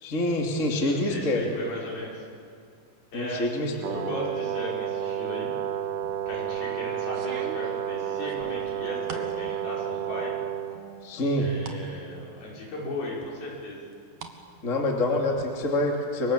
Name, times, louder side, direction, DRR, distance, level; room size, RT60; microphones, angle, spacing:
voice 1, 0.0-1.5 3.1-4.0 11.0-11.5 14.6-16.3, left 1 dB, 20° left, 1 dB, 2.5 m, -26 dB
voice 2, 0.9-2.3 3.1-3.4 3.9-5.5 6.3-10.3 11.4-13.8, left 1 dB, 65° left, -4 dB, 7.6 m, -36 dB
Brass instrument, 3.8-10.8, right 10 dB, 75° right, 3.6 m, -31 dB
sound 1, 6.0-6.5 7.1-9.4 9.8-10.4 10.7-11.8 12.3-12.4 13.2-14.4 14.7-15.4, right 5 dB, 55° right, 2.9 m, -43 dB
29.5 x 24.5 x 7.5 m, 2.3 s
omnidirectional pair, 4.6 m